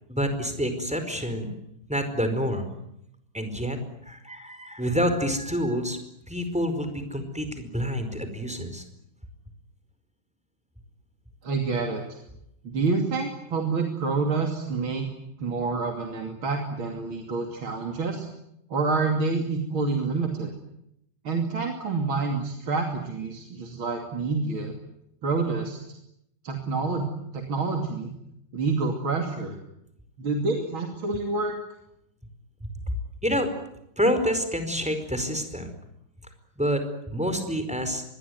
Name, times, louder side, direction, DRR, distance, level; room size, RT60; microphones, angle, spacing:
voice 1, 0.1-1.5 1.9-2.7 3.3-6.0 6.3-8.8 32.6-33.5 34.0-35.7 36.6-38.0, equal, 5° right, 8 dB, 4.8 m, -28 dB
voice 2, 11.4-12.2 12.6-15.1 15.4-18.3 18.7-20.5 21.2-24.7 25.2-25.8 26.4-27.1 27.3-28.1 28.5-29.6 30.2-31.6, right 4 dB, 80° right, 3 dB, 3.5 m, -27 dB
25.5 x 22.0 x 9.5 m, 0.80 s
omnidirectional pair, 2.2 m